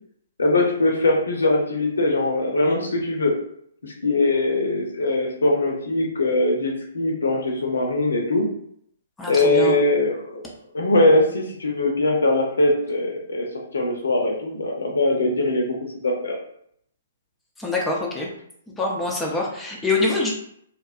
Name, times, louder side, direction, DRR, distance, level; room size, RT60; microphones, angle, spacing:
voice 1, 0.4-3.3 3.8-8.4 9.3-10.4 10.7-13.5 13.7-15.7 16.0-16.4, left 2 dB, 70° left, 0 dB, 0.6 m, -21 dB
voice 2, 9.2-9.7 17.6-18.3 18.8-20.3, left 2 dB, 5° left, -3 dB, 0.6 m, -24 dB
2.6 x 2.2 x 2.4 m, 0.68 s
figure-of-eight pair, 125°, 0 cm